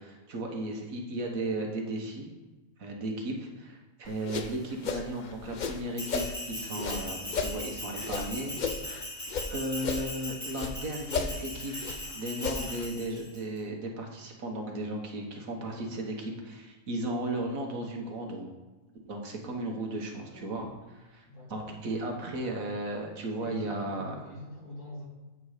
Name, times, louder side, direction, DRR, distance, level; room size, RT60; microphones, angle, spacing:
voice 1, 0.0-2.3 2.8-9.2 9.5-18.5 19.1-21.2 21.5-24.1, right 1 dB, 65° right, 1 dB, 1.6 m, -35 dB
sound 1, 4.0-6.3 6.7-9.5 9.8-10.8 11.0-12.9, left 5 dB, 60° left, 0.4 m, -35 dB
Bell, 6.0-13.4, equal, 20° left, 2.5 m, -39 dB
voice 2, 20.1-20.5 21.3-21.7 23.4-25.0, left 1 dB, 80° left, -7 dB, 3.9 m, -45 dB
8.2 x 4.5 x 6.5 m, 1.2 s
omnidirectional pair, 1.6 m